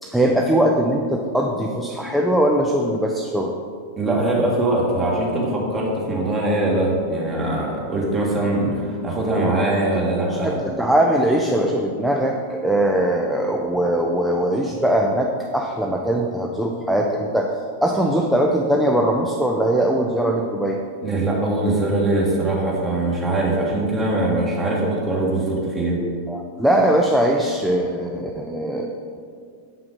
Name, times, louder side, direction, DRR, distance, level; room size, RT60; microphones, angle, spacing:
voice 1, 0.0-3.5 9.4-9.6 10.3-17.5 17.8-20.8 26.3-29.2, right 1 dB, ahead, 0 dB, 0.5 m, -21 dB
voice 2, 4.0-10.5 21.0-26.0, right 2 dB, 20° right, -3 dB, 1.8 m, -22 dB
7.5 x 5.6 x 3.9 m, 2.2 s
figure-of-eight pair, 90°, 0 cm